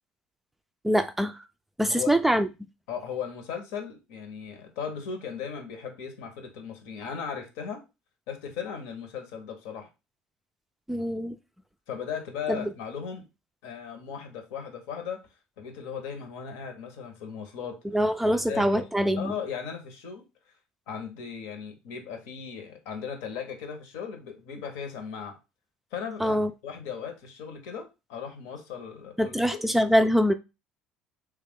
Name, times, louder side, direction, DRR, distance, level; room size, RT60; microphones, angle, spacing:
voice 1, 0.8-1.4 1.8-2.5 10.9-11.4 12.5-12.6 17.9-19.4 26.2-26.5 29.2-30.3, equal, 5° right, 0.3 m, -24 dB
voice 2, 2.9-7.8 8.3-9.9 11.9-13.3 13.6-15.2 15.6-17.8 18.5-18.9 19.2-20.2 20.9-25.4 25.9-26.4 26.6-29.6, left 7 dB, 85° left, 0.9 m, -37 dB
3.2 x 2.4 x 3.6 m
supercardioid pair, 100°, 3 cm